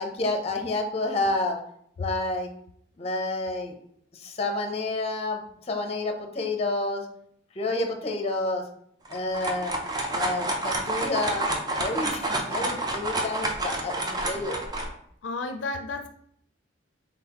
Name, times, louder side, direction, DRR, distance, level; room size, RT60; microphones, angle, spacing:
voice 1, 0.0-1.6 2.0-2.5 3.0-3.7 4.1-5.4 5.7-7.0 7.6-8.6 9.1-9.7 10.1-11.5 11.8-14.6, left 2 dB, 35° left, 4 dB, 0.6 m, -29 dB
sound 1, 9.0-14.9, right 2 dB, 20° right, 0.5 m, -29 dB
voice 2, 15.2-16.1, left 3 dB, 75° left, 6 dB, 0.4 m, -32 dB
3.9 x 3.4 x 2.9 m, 0.68 s
head